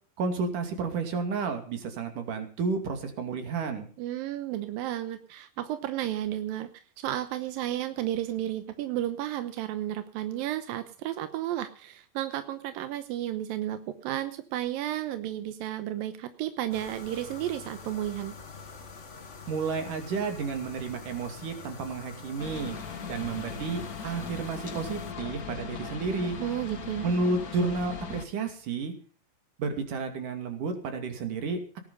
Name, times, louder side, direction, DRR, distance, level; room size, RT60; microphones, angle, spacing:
voice 1, 0.2-3.9 19.5-22.8 23.1-26.4 27.0-28.9 29.6-31.8, right 4 dB, 65° right, 6 dB, 4.1 m, -31 dB
voice 2, 4.0-18.3 26.4-27.1, right 12 dB, 90° right, 10 dB, 2.7 m, -33 dB
sound 1, 16.7-25.1, left 5 dB, 70° left, 0.6 m, -45 dB
sound 2, 22.4-28.3, left 6 dB, 45° left, 1.2 m, -39 dB
18.5 x 10.5 x 5.4 m, 0.41 s
omnidirectional pair, 4.0 m